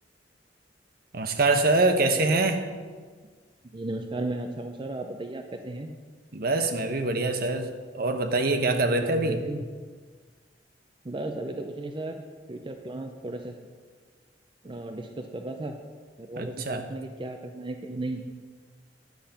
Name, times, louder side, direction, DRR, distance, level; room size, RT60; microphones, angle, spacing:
voice 1, 1.1-2.6 6.3-7.7 7.9-9.4 16.4-16.8, right 2 dB, 60° right, 7 dB, 0.9 m, -24 dB
voice 2, 3.7-5.9 9.0-9.6 11.0-12.2 12.5-13.5 14.6-15.8 16.2-18.2, right 2 dB, 30° right, 4 dB, 0.6 m, -35 dB
10.5 x 7.1 x 5.8 m, 1.5 s
head